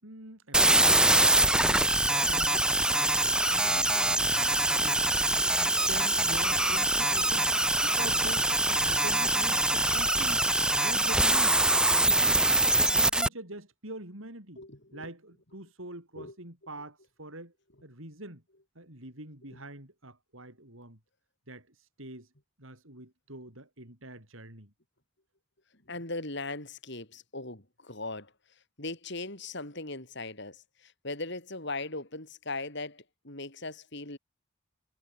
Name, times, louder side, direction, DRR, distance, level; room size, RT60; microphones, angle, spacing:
voice 1, 0.0-1.3 1.6-5.0 5.3-7.6 7.8-10.5 10.8-11.6 11.9-12.5 12.9-14.6 14.9-17.5 17.8-18.4 18.8-21.0 21.5-22.3 22.6-24.7, right 1 dB, 70° right, 7.5 m, -45 dB
sound 1, 0.5-13.3, right 1 dB, 5° right, 1.1 m, -24 dB
voice 2, 14.6-15.1 16.2-16.3 25.9-28.3 28.8-34.2, left 2 dB, 55° left, 5.9 m, -39 dB
head